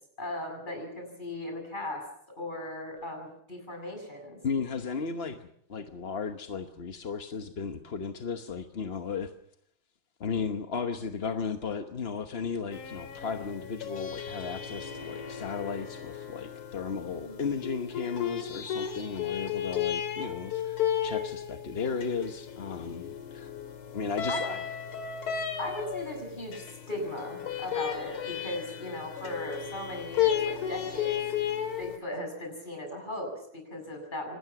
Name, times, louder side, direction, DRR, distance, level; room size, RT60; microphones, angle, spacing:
voice 1, 0.2-2.1 2.4-4.4 17.1-17.5 24.3-24.5 25.6-31.2 31.8-34.4, left 1 dB, 20° left, 3 dB, 7.2 m, -37 dB
voice 2, 4.4-9.3 10.2-23.5 23.9-24.6, left 5 dB, 40° left, 6 dB, 1.0 m, -35 dB
sound 1, 12.7-32.0, left 9 dB, 90° left, 2.8 m, -34 dB
25.0 x 20.0 x 6.0 m, 0.70 s
omnidirectional pair, 2.3 m